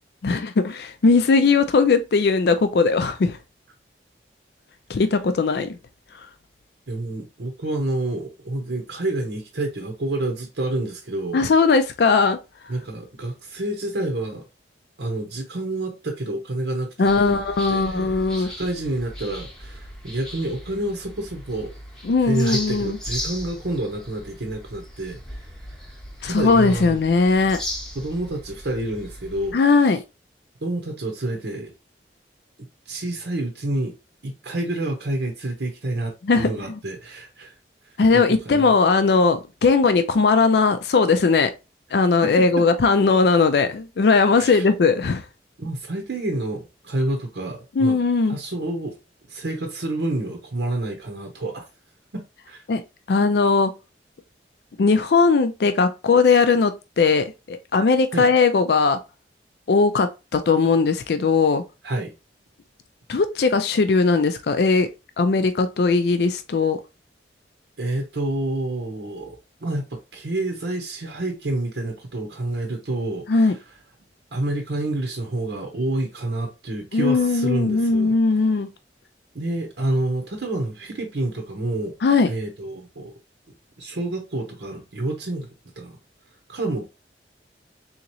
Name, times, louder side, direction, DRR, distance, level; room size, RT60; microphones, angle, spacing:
voice 1, 0.2-3.4 4.9-5.7 11.3-12.4 17.0-18.5 22.0-23.0 26.2-27.6 29.5-30.0 36.2-36.5 38.0-41.5 41.9-45.2 47.8-48.4 52.7-52.8 53.1-53.7 54.8-59.0 59.7-61.6 63.1-64.9 65.2-66.8 73.3-73.5 76.9-78.7 82.0-82.3, left 4 dB, 65° left, 0.4 m, -19 dB
voice 2, 6.9-11.5 12.7-14.5 15.0-17.4 17.7-21.7 22.2-25.5 26.2-27.0 27.9-29.6 30.6-31.7 32.9-33.9 34.2-37.5 38.1-38.7 42.2-42.7 44.4-44.7 45.6-48.0 48.3-49.0 49.3-51.6 52.1-52.6 58.1-58.3 61.8-62.1 67.8-69.4 69.6-73.6 74.3-78.1 79.3-81.9 82.3-83.1 83.8-86.0 86.5-86.8, right 2 dB, 80° right, 0.8 m, -28 dB
sound 1, 17.1-29.5, left 1 dB, 5° left, 0.8 m, -37 dB
3.9 x 2.9 x 2.9 m
head